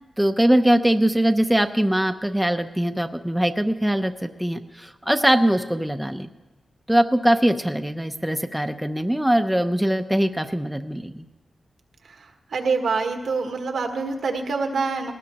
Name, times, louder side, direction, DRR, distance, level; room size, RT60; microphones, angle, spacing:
voice 1, 0.2-6.3 6.9-11.3, right 1 dB, 5° right, 7 dB, 0.7 m, -22 dB
voice 2, 12.0-15.1, right 4 dB, 80° right, 4 dB, 1.5 m, -26 dB
19.5 x 18.5 x 3.0 m, 1.1 s
wide cardioid pair, 90°, 0 cm